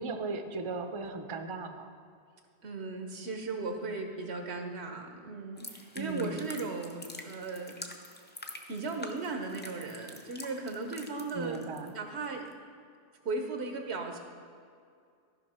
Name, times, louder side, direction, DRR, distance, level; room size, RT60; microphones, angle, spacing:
voice 1, 0.0-1.9 5.9-6.5 11.3-11.9, right 3 dB, 35° right, 5 dB, 0.6 m, -37 dB
voice 2, 2.6-8.0 8.7-11.6 11.9-12.4 13.2-14.2, right 3 dB, 80° right, 4 dB, 1.2 m, -37 dB
sound 1, 5.6-11.9 12.2-12.5, left 1 dB, 15° left, 0.5 m, -47 dB
14.5 x 5.4 x 4.3 m, 2.3 s
omnidirectional pair, 1.1 m